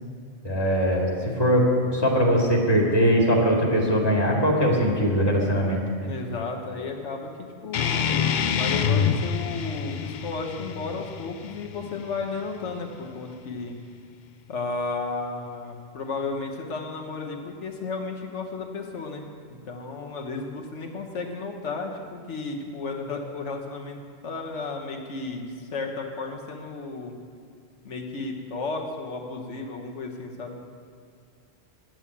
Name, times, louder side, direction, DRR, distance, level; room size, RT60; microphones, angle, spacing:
voice 1, 0.4-1.1 1.4-1.6 1.9-5.8, equal, 20° left, -2 dB, 2.1 m, -21 dB
voice 2, 6.0-7.3 7.6-13.8 14.5-24.0 24.2-27.1 27.8-30.6, left 4 dB, 90° left, 2 dB, 1.4 m, -33 dB
sound 1, 7.7-12.8, left 7 dB, 55° left, 0.6 m, -27 dB
10.5 x 7.5 x 8.5 m, 2.2 s
omnidirectional pair, 1.2 m